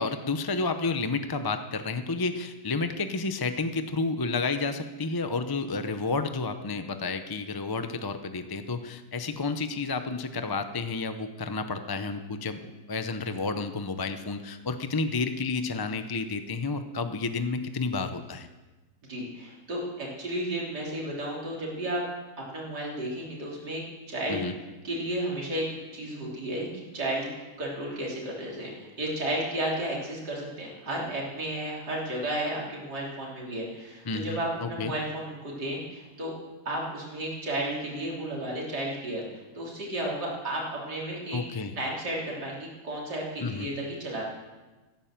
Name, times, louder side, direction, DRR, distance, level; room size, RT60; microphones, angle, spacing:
voice 1, 0.0-18.5 24.3-24.5 34.1-34.9 41.3-41.7 43.4-43.7, left 3 dB, 25° left, 8 dB, 0.4 m, -31 dB
voice 2, 19.1-22.0 22.5-23.8 24.1-24.4 24.8-25.7 25.9-26.7 26.9-27.3 27.6-36.3 36.7-41.4 41.8-44.2, right 1 dB, 85° right, -4 dB, 4.0 m, -33 dB
15.5 x 11.5 x 7.4 m, 1.2 s
omnidirectional pair, 1.7 m